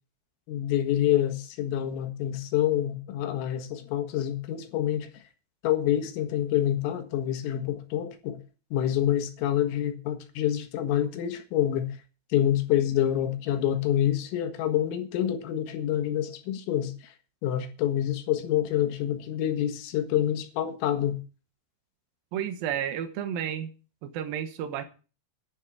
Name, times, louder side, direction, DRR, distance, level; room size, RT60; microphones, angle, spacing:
voice 1, 0.5-5.1 5.6-8.4 8.7-11.9 12.3-17.1 17.4-21.2, left 11 dB, 85° left, 4.2 m, -27 dB
voice 2, 22.3-23.7 24.0-24.8, right 9 dB, 65° right, 2.4 m, -31 dB
11.0 x 7.4 x 8.7 m
omnidirectional pair, 5.8 m